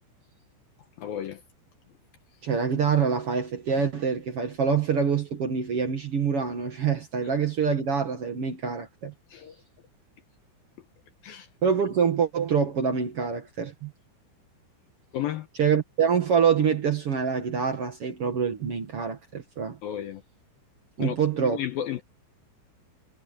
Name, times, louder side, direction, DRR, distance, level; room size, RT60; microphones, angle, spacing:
voice 1, 1.0-1.4 9.3-9.6 11.2-11.5 15.1-15.5 19.8-20.2 21.0-21.2 21.5-22.0, left 11 dB, 75° left, 2.3 m, -32 dB
voice 2, 2.4-9.1 11.6-13.9 15.6-19.8 21.0-21.6, right 6 dB, 70° right, 1.4 m, -25 dB
omnidirectional pair, 5.4 m